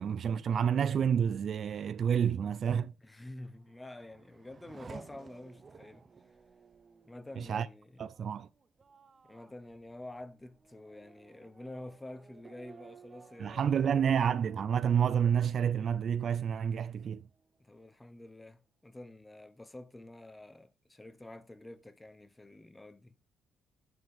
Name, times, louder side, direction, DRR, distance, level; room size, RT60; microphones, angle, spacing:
voice 1, 0.0-2.9 7.4-7.7 8.0-8.5 13.4-17.3, right 8 dB, 55° right, 0.4 m, -29 dB
voice 2, 3.0-6.1 7.0-8.1 9.2-14.1 14.8-14.9 17.6-23.2, left 1 dB, 15° left, 0.8 m, -48 dB
Race car auto racing / Accelerating revving vroom, 3.4-16.6 17.0-17.7, right 5 dB, 35° right, 0.8 m, -56 dB
9.3 x 3.9 x 4.8 m
cardioid pair, 90°, 0 cm